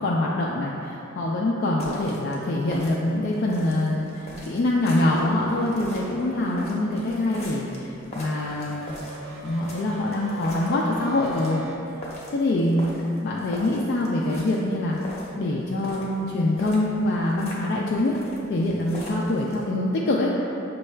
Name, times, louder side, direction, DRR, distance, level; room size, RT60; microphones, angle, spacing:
voice 1, 0.0-8.9 9.4-11.6 12.3-15.0 15.4-18.2 18.5-20.7, left 1 dB, 55° left, -3 dB, 0.3 m, -24 dB
sound 1, 1.8-19.6, equal, 35° left, 0.7 m, -42 dB
sound 2, 4.9-7.1 8.3-11.8, right 1 dB, 65° right, 0.5 m, -41 dB
6.2 x 2.3 x 3.2 m, 2.8 s
head